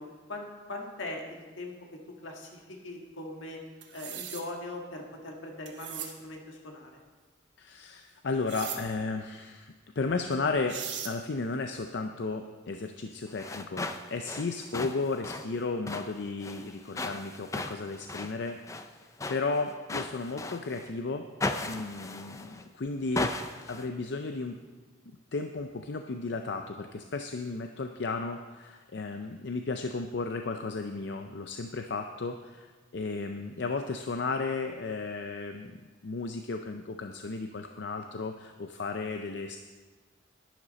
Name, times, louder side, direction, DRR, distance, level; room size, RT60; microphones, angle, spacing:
voice 1, 0.0-3.6 3.9-6.9, left 2 dB, 85° left, 1 dB, 1.8 m, -41 dB
sound 1, 3.8-4.4 5.7-6.1 8.5-8.8 10.3-10.4 10.7-11.1, right 9 dB, 70° right, 1.2 m, -38 dB
voice 2, 7.6-10.8 11.0-18.6 19.3-21.3 21.6-23.3 23.7-24.6 25.3-39.6, left 3 dB, 65° left, 6 dB, 0.5 m, -34 dB
sound 2, 13.3-20.9 21.4-22.7 23.1-23.9, left 2 dB, 15° left, 0.4 m, -37 dB
11.0 x 10.0 x 4.1 m, 1.4 s
head